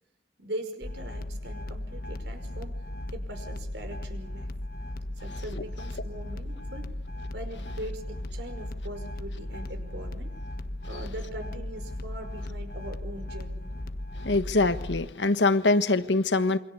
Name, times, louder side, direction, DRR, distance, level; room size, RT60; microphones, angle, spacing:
voice 1, 0.4-2.8 3.1-4.5 5.2-6.9 7.3-10.3 10.8-13.7, right 1 dB, 70° right, 5.4 m, -41 dB
sound 1, 0.8-15.1, left 1 dB, 50° left, 1.4 m, -36 dB
voice 2, 14.2-16.6, left 3 dB, 75° left, 1.4 m, -23 dB
27.5 x 25.0 x 8.5 m
head